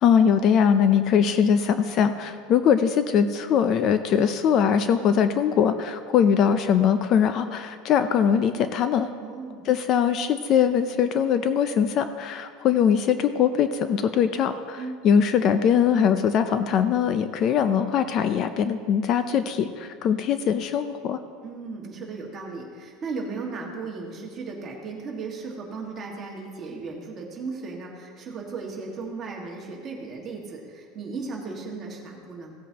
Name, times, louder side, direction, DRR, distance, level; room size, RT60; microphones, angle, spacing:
voice 1, 0.0-9.1 9.6-14.8 15.0-21.2, left 8 dB, 40° left, 10 dB, 0.4 m, -21 dB
voice 2, 9.2-9.6 14.8-14.9 21.4-32.6, right 4 dB, 25° right, -2 dB, 1.8 m, -36 dB
16.5 x 8.3 x 2.9 m, 2.1 s
supercardioid pair, 155°, 0 cm